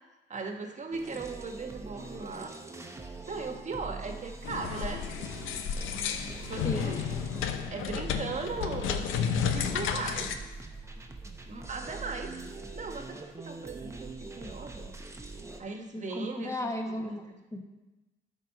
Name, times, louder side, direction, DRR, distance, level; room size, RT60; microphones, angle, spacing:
voice 1, 0.3-2.5 3.3-5.1 6.4-7.0 7.7-10.3 11.4-13.2 13.4-14.9 15.6-17.4, right 4 dB, 35° right, 4 dB, 1.3 m, -38 dB
sound 1, 0.9-15.6, right 3 dB, 15° right, 0.8 m, -43 dB
sound 2, 4.4-10.4, left 7 dB, 85° left, 0.7 m, -32 dB
voice 2, 15.9-17.2 17.5-17.6, left 1 dB, 15° left, 2 dB, 1.4 m, -34 dB
12.5 x 4.2 x 5.5 m, 1.1 s
cardioid pair, 90°, 20 cm